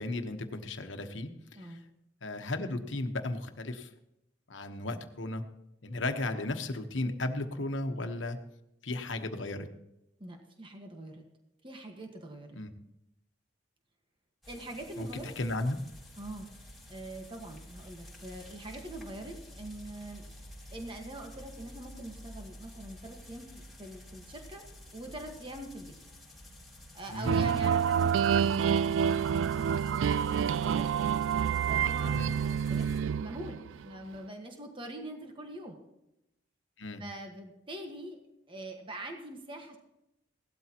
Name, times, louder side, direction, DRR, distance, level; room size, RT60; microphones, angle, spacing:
voice 1, 0.0-1.8 2.2-3.9 4.5-5.4 5.8-8.4 8.8-9.7 12.5-12.7 15.0-15.8 27.1-27.6 32.1-32.3 36.8-37.0, left 2 dB, 90° left, 7 dB, 1.2 m, -35 dB
voice 2, 10.2-11.2 11.6-12.6 14.5-15.3 16.2-20.3 20.7-24.7 24.9-26.0 26.9-31.0 31.6-32.3 32.5-32.9 33.2-35.8 37.0-38.2 38.5-39.8, right 1 dB, 25° right, 3 dB, 1.5 m, -44 dB
sound 1, 14.4-33.0, equal, ahead, 4.0 m, -50 dB
sound 2, 27.2-33.8, right 7 dB, 85° right, 0.3 m, -28 dB
17.5 x 12.5 x 3.0 m, 0.86 s
head